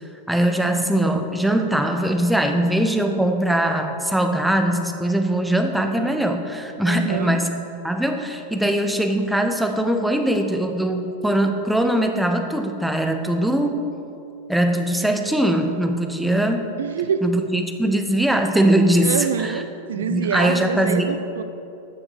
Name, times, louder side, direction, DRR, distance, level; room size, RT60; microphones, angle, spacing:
voice 1, 0.3-7.5 7.8-13.9 14.5-16.7 17.2-19.6 20.0-21.2, right 1 dB, 5° right, 5 dB, 0.9 m, -21 dB
voice 2, 6.9-7.4 16.8-17.4 19.0-21.4, right 7 dB, 65° right, 11 dB, 0.6 m, -26 dB
12.0 x 7.0 x 6.4 m, 2.7 s
figure-of-eight pair, 90°, 0 cm